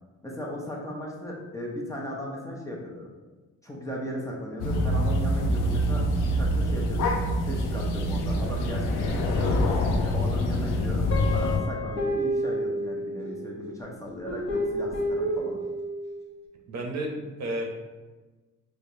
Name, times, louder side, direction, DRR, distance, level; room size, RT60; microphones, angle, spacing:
voice 1, 0.2-3.1 3.6-15.6, left 1 dB, 10° left, -3 dB, 0.7 m, -37 dB
sound 1, 4.6-11.6, equal, 90° left, 0.5 m, -25 dB
Guitar, 11.1-13.6 14.3-16.2, equal, 45° left, 0.9 m, -30 dB
voice 2, 16.7-17.6, right 1 dB, 60° right, 1 dB, 0.7 m, -32 dB
4.5 x 2.2 x 2.7 m, 1.2 s
cardioid pair, 90°, 30 cm